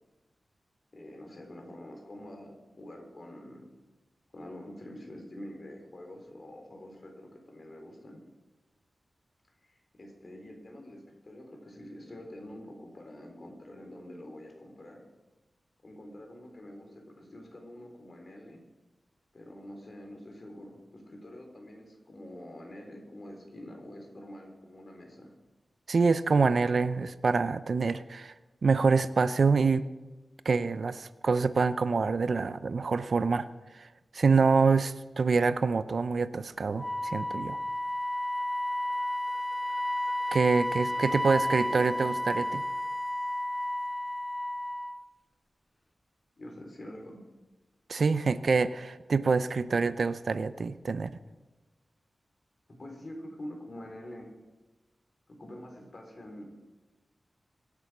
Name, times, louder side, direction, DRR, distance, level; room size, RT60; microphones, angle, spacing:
voice 1, 0.9-3.7 4.3-8.2 9.6-15.0 15.8-18.6 19.3-25.3 40.4-42.4 46.4-47.2 52.7-54.3 55.3-56.4, left 1 dB, 40° left, 2 dB, 3.7 m, -46 dB
voice 2, 25.9-28.3 28.6-29.8 30.4-33.5 33.7-33.9 34.1-37.6 40.3-42.6 47.9-51.2, right 4 dB, 60° right, 13 dB, 0.6 m, -26 dB
Wind instrument woodwind instrument, 36.8-45.0, left 1 dB, 10° left, 0.5 m, -32 dB
24.0 x 8.4 x 6.1 m, 1.2 s
wide cardioid pair, 120°, 0 cm